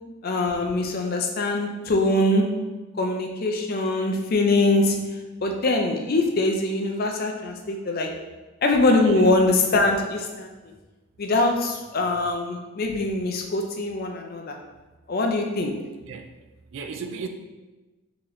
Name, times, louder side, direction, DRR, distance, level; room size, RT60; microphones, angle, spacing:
voice 1, 0.2-2.5 3.0-4.9 5.4-8.1 8.6-10.5 11.2-14.5 15.1-15.7, left 2 dB, 40° left, 2 dB, 0.4 m, -23 dB
voice 2, 16.7-17.3, right 5 dB, 55° right, 5 dB, 0.3 m, -35 dB
3.8 x 2.9 x 3.1 m, 1.2 s
head